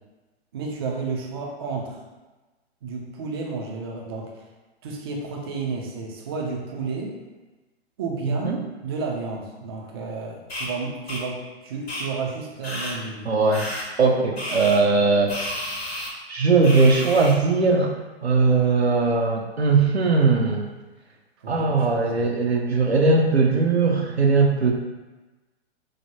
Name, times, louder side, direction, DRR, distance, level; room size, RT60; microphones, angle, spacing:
voice 1, 0.5-2.0 2.8-4.5 4.8-7.2 8.0-13.3 21.4-22.3, right 4 dB, 25° right, 0 dB, 0.3 m, -32 dB
voice 2, 8.2-8.6 13.3-13.7 14.0-15.5 16.3-17.9 18.2-20.7 21.5-24.7, right 4 dB, 85° right, 1 dB, 0.5 m, -19 dB
sound 1, 10.5-10.7 11.1-11.2 11.9-12.0 12.6-12.9 13.5-13.8 14.4-14.8 15.3-16.1 16.6-17.3, left 1 dB, 75° left, 0.9 m, -31 dB
4.7 x 2.0 x 2.9 m, 1.2 s
figure-of-eight pair, 110°, 32 cm